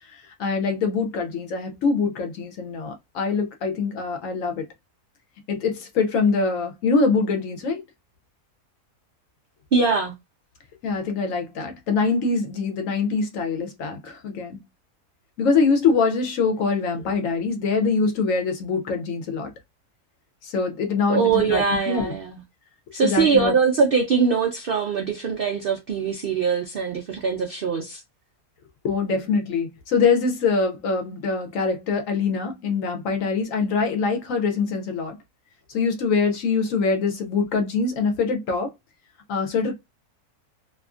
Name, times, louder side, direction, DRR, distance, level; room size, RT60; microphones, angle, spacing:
voice 1, 0.1-4.6 5.5-7.8 10.8-14.6 15.4-19.5 20.4-22.1 23.0-23.5 28.8-35.2 35.7-38.7 39.3-39.7, left 4 dB, 65° left, 0.9 m, -24 dB
voice 2, 9.7-10.1 21.1-22.4 22.9-28.0, right 5 dB, 75° right, 0.5 m, -22 dB
2.7 x 2.5 x 2.3 m
omnidirectional pair, 1.6 m